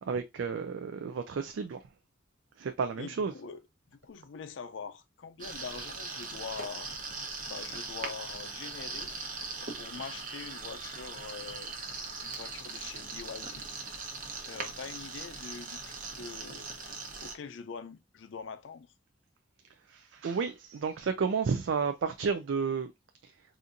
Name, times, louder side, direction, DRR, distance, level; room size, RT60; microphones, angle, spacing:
voice 1, 0.1-1.8 2.6-3.3 19.9-22.9 23.2-23.3, right 5 dB, 80° right, 0.4 m, -31 dB
voice 2, 2.9-3.6 3.9-6.9 7.4-9.1 9.6-11.7 12.2-13.7 14.4-16.8 17.2-18.9, left 5 dB, 80° left, 0.5 m, -44 dB
sound 1, 5.4-17.3, right 4 dB, 45° right, 0.8 m, -40 dB
4.2 x 2.5 x 2.5 m
head